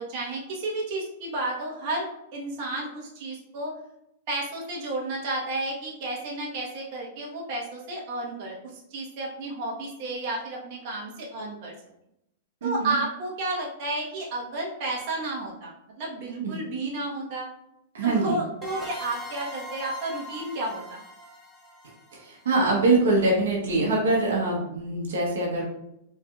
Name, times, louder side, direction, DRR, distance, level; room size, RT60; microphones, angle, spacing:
voice 1, 0.0-3.7 4.3-11.7 12.6-17.5 18.0-21.0, right 2 dB, 50° right, -2 dB, 1.3 m, -32 dB
voice 2, 12.6-13.0 16.4-16.5 17.9-18.4 22.1-25.6, right 2 dB, 85° right, -2 dB, 1.1 m, -24 dB
sound 1, 18.6-23.1, equal, 10° left, 0.9 m, -42 dB
4.4 x 3.3 x 2.4 m, 0.81 s
supercardioid pair, 140°, 0 cm